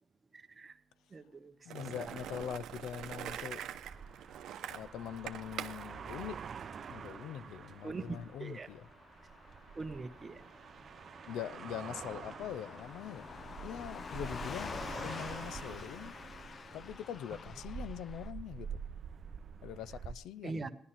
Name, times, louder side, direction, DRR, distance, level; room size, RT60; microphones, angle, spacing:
voice 1, 0.3-0.7 1.1-1.5 2.0-2.1 7.8-8.7 9.7-10.4 20.4-20.7, right 3 dB, 30° right, 1.3 m, -42 dB
voice 2, 1.6-3.6 4.7-6.4 6.9-8.9 11.3-13.3 13.6-16.2 16.7-18.8 19.6-20.7, left 10 dB, 85° left, 0.5 m, -43 dB
Skateboard, 1.7-7.1, right 10 dB, 80° right, 0.9 m, -44 dB
sound 1, 2.0-20.1, right 7 dB, 50° right, 0.7 m, -48 dB
Car passing by / Truck, 4.0-18.3, left 5 dB, 45° left, 0.6 m, -49 dB
16.5 x 11.5 x 5.8 m
cardioid pair, 90°, 0 cm